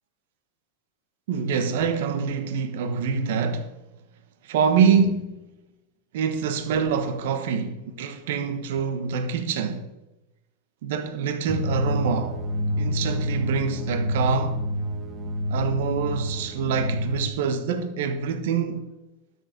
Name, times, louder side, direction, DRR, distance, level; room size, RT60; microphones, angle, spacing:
voice 1, 1.3-3.7 4.4-5.4 6.1-9.9 10.8-12.4 12.8-14.6 15.5-18.9, right 6 dB, 65° right, 1.2 m, -25 dB
sound 1, 11.5-17.3, left 1 dB, 20° right, 1.6 m, -28 dB
12.5 x 6.7 x 5.2 m
supercardioid pair, 155°, 0 cm